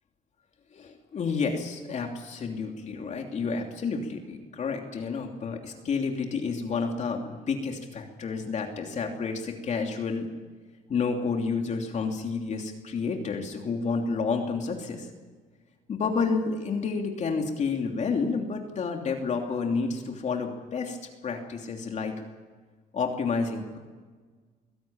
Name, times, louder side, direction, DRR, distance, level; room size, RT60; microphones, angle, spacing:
voice 1, 0.7-10.3 10.9-15.1 15.9-21.0 21.2-22.2 22.9-23.8, left 4 dB, 45° left, 2 dB, 3.0 m, -30 dB
23.5 x 16.5 x 8.8 m, 1.4 s
cardioid pair, 110°, 17 cm